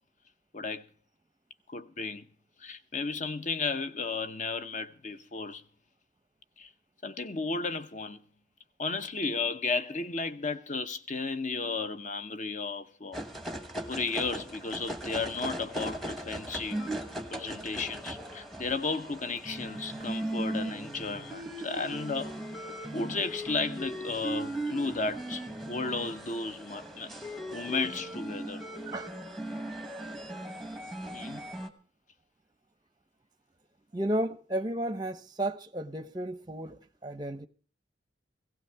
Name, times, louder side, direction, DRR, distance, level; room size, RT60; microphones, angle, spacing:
voice 1, 0.5-0.8 1.7-2.2 2.6-5.6 6.6-6.7 7.0-8.2 8.8-13.2 13.9-16.8 17.3-22.4 22.9-27.1 27.5-28.6 31.1-31.4, left 4 dB, 40° left, 0.8 m, -34 dB
sound 1, 13.1-31.7, right 1 dB, ahead, 1.0 m, -38 dB
voice 2, 33.9-37.5, right 1 dB, 20° right, 0.7 m, -33 dB
17.0 x 15.0 x 3.4 m
head